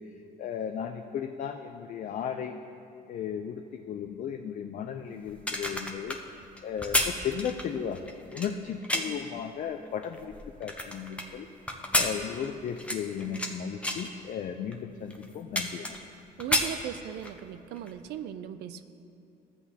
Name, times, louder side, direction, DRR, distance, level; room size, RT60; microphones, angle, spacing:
voice 1, 0.4-2.6 3.1-6.2 6.6-10.3 10.6-11.5 11.9-16.0, left 8 dB, 50° left, 5 dB, 0.4 m, -35 dB
sound 1, 5.3-9.3 9.9-11.3 11.7-13.5 13.8-14.1 14.7-14.8 15.1-16.1 16.4-17.4 17.8-17.9, left 1 dB, 5° left, 0.7 m, -30 dB
voice 2, 16.4-18.9, right 9 dB, 80° right, 11 dB, 0.4 m, -38 dB
13.5 x 8.0 x 2.8 m, 2.7 s
cardioid pair, 110°, 17 cm